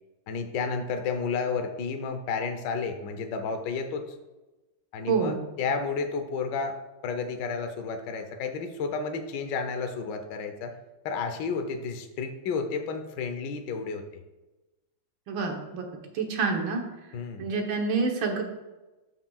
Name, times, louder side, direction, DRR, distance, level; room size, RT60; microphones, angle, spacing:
voice 1, 0.3-4.0 4.9-6.7 7.0-10.7 11.0-14.0 17.1-17.5, left 5 dB, 70° left, 6 dB, 1.4 m, -31 dB
voice 2, 5.1-5.4 15.3-15.9 16.1-16.8 17.4-18.4, right 4 dB, 80° right, 2 dB, 2.0 m, -27 dB
13.5 x 6.0 x 2.3 m, 1.1 s
omnidirectional pair, 2.1 m